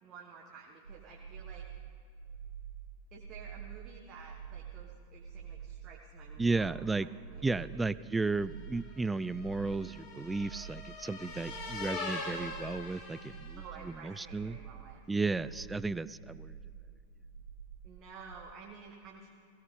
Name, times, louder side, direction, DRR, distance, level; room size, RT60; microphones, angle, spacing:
voice 1, 0.0-1.6 3.1-8.1 13.6-15.5 17.8-19.3, right 5 dB, 30° right, -1 dB, 1.5 m, -52 dB
sound 1, 0.8-18.4, right 7 dB, 80° right, 0.7 m, -48 dB
voice 2, 6.4-7.1 7.4-14.6 15.1-16.6, right 3 dB, 10° right, 18 dB, 0.3 m, -34 dB
sound 2, 8.4-13.9, left 3 dB, 40° left, 3.2 m, -43 dB
19.5 x 17.0 x 3.8 m, 2.4 s
figure-of-eight pair, 90°, 0 cm